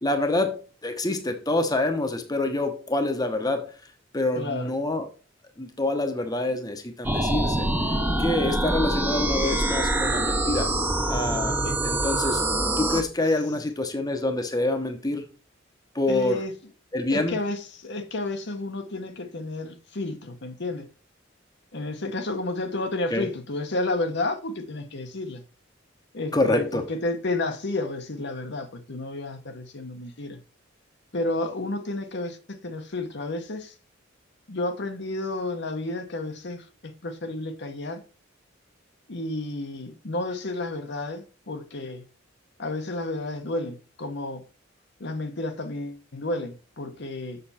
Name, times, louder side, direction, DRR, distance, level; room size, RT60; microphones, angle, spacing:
voice 1, 0.0-3.7 4.1-5.1 5.6-10.7 11.1-12.4 12.8-15.2 15.9-16.4 16.9-17.4 23.1-23.3 26.3-26.8, left 2 dB, 20° left, 1.0 m, -26 dB
voice 2, 4.4-4.7 11.6-11.7 16.1-16.5 17.1-20.9 21.7-25.4 26.1-30.4 31.1-33.7 34.5-38.0 39.1-42.0 42.6-44.4 45.0-47.4, left 2 dB, 60° left, 1.1 m, -31 dB
sound 1, 7.0-13.0, right 1 dB, 10° right, 0.9 m, -25 dB
6.8 x 6.8 x 4.2 m
head